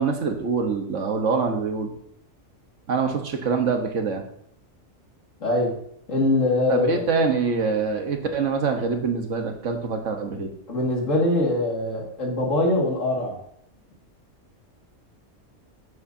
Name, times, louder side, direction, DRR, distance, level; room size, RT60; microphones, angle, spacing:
voice 1, 0.0-1.9 2.9-4.2 6.7-10.5, right 5 dB, 75° right, 5 dB, 1.5 m, -25 dB
voice 2, 5.4-5.7 6.1-6.9 10.7-13.4, left 2 dB, 85° left, -2 dB, 2.4 m, -22 dB
9.2 x 8.5 x 2.7 m, 0.67 s
omnidirectional pair, 1.3 m